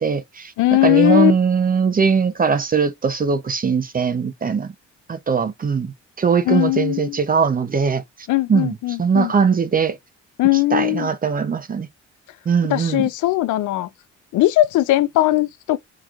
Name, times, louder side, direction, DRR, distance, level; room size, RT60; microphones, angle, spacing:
voice 1, 0.0-0.5 0.8-4.7 5.1-8.0 8.5-10.0 10.7-11.9 12.5-13.1, right 6 dB, 30° right, 0.6 m, -20 dB
voice 2, 0.6-1.3 6.5-7.2 8.3-9.3 10.4-11.1 12.7-13.9 14.3-15.8, left 17 dB, 80° left, 0.5 m, -19 dB
3.7 x 3.0 x 2.4 m
cardioid pair, 90°, 30 cm